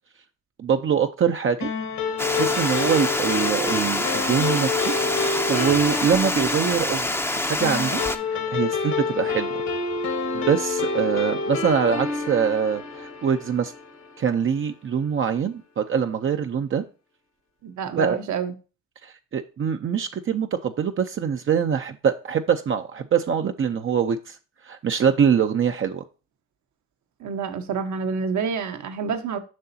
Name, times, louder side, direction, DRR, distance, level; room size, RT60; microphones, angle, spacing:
voice 1, 0.6-1.7 2.3-4.9 5.2-7.2 7.5-8.0 8.3-9.6 10.3-13.7 14.2-16.8 18.0-18.2 19.0-24.4 24.6-26.0, right 7 dB, 45° right, 0.6 m, -24 dB
sound 1, 1.6-14.4, left 4 dB, 65° left, 1.6 m, -28 dB
Water, 2.2-8.2, left 2 dB, 10° left, 0.7 m, -26 dB
voice 2, 17.6-18.5 27.2-29.4, right 6 dB, 70° right, 1.2 m, -28 dB
7.6 x 5.9 x 2.8 m
cardioid pair, 90°, 30 cm